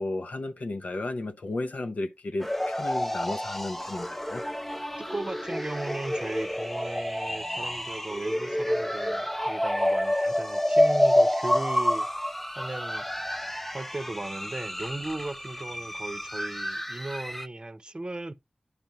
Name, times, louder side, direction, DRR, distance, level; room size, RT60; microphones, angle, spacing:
voice 1, 0.0-4.4, left 2 dB, 70° left, 0.9 m, -33 dB
sound 1, 2.4-17.5, left 1 dB, 10° left, 0.5 m, -28 dB
voice 2, 4.9-12.1 12.6-13.1 13.7-18.3, right 2 dB, 35° right, 0.8 m, -36 dB
9.8 x 5.3 x 3.0 m
wide cardioid pair, 60°, 3 cm